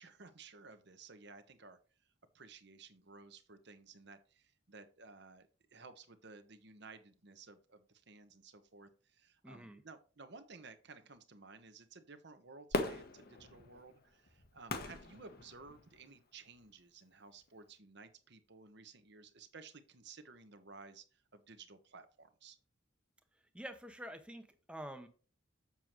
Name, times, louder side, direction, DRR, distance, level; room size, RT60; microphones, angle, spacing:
voice 1, 0.0-1.8 2.3-22.6, right 4 dB, 55° right, 1.1 m, -56 dB
voice 2, 9.4-9.8 23.5-25.1, right 1 dB, 5° right, 0.9 m, -47 dB
Fireworks, 12.7-16.0 16.6-16.7, left 2 dB, 50° left, 1.1 m, -40 dB
7.5 x 7.2 x 3.1 m
head